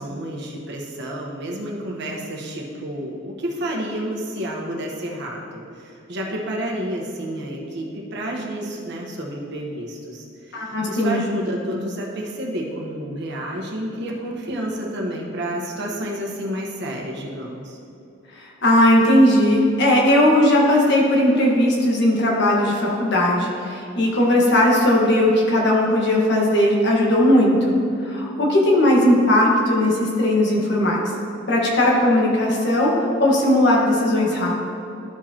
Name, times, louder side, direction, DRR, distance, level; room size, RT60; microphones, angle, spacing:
voice 1, 0.0-17.8, right 1 dB, 60° right, -1 dB, 1.2 m, -30 dB
voice 2, 10.5-11.2 18.6-27.7 28.0-31.0 31.5-34.6, left 1 dB, 60° left, -3 dB, 1.4 m, -18 dB
12.5 x 4.7 x 2.9 m, 2.7 s
head